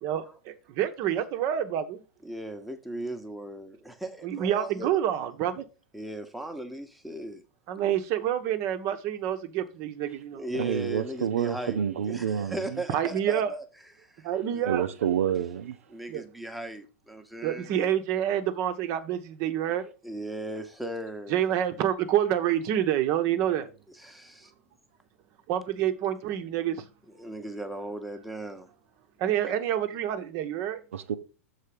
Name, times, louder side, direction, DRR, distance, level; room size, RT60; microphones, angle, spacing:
voice 1, 0.0-2.0 4.2-5.6 7.7-10.4 12.9-13.5 14.2-14.9 16.1-16.2 17.4-19.9 21.3-23.7 25.5-26.8 29.2-30.8, right 10 dB, 40° right, 0.9 m, -28 dB
voice 2, 2.2-4.9 5.9-7.4 10.3-11.8 12.1-13.6 14.0-14.6 15.9-17.7 20.0-21.4 24.0-24.5 27.2-28.7 29.5-29.6, right 1 dB, ahead, 1.0 m, -37 dB
voice 3, 10.5-12.8 14.6-15.8 30.9-31.2, right 8 dB, 70° right, 0.6 m, -28 dB
6.6 x 4.1 x 5.2 m
figure-of-eight pair, 95°, 8 cm